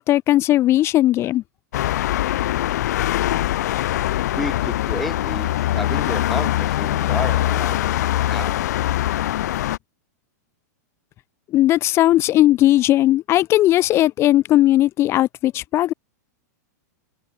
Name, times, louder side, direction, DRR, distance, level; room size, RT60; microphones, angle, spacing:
voice 1, 0.0-1.4 11.5-15.9, left 14 dB, 25° left, 1.2 m, -17 dB
sound 1, 1.7-9.8, left 14 dB, 70° left, 0.8 m, -22 dB
voice 2, 4.3-7.8 8.1-8.8, left 1 dB, ahead, 1.0 m, -31 dB
open air
supercardioid pair, 150°, 9 cm